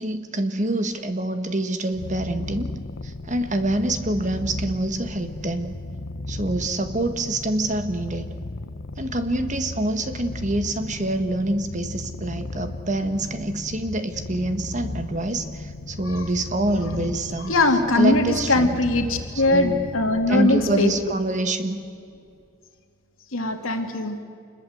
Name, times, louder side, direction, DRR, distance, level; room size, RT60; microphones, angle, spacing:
voice 1, 0.0-2.7 3.0-5.7 6.3-8.2 9.0-17.5 17.9-18.8 19.5-19.9 20.3-21.8, right 1 dB, 35° right, 8 dB, 1.6 m, -26 dB
Purr, 1.9-21.2, left 2 dB, 65° left, 0.9 m, -35 dB
voice 2, 17.4-20.9 23.3-24.2, left 2 dB, 85° left, 5 dB, 2.6 m, -21 dB
26.5 x 21.5 x 8.0 m, 2.4 s
head